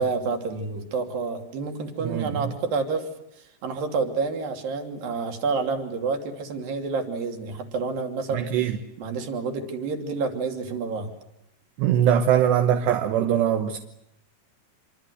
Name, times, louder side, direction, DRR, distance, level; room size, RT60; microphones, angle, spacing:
voice 1, 0.0-3.1 3.6-11.1, right 4 dB, 55° right, 6 dB, 4.4 m, -29 dB
voice 2, 8.3-8.7 11.8-13.8, right 9 dB, 75° right, 7 dB, 3.3 m, -21 dB
27.0 x 24.5 x 8.1 m, 0.83 s
omnidirectional pair, 5.0 m